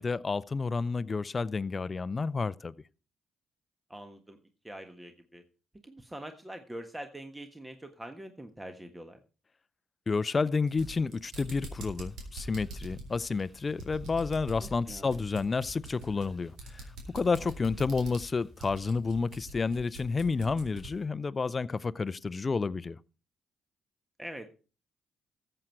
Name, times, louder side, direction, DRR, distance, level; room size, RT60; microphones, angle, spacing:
voice 1, 0.0-2.7 10.1-16.8 17.1-23.0, left 4 dB, 40° left, 0.5 m, -30 dB
voice 2, 3.9-4.4 4.6-5.4 5.8-9.2 14.6-15.2 17.4-17.5 24.2-24.5, right 1 dB, 15° right, 1.4 m, -44 dB
sound 1, 10.6-21.0, right 2 dB, 75° right, 3.9 m, -45 dB
sound 2, 12.0-19.0, left 1 dB, 5° left, 5.9 m, -56 dB
14.0 x 7.8 x 4.6 m
supercardioid pair, 50°, 0 cm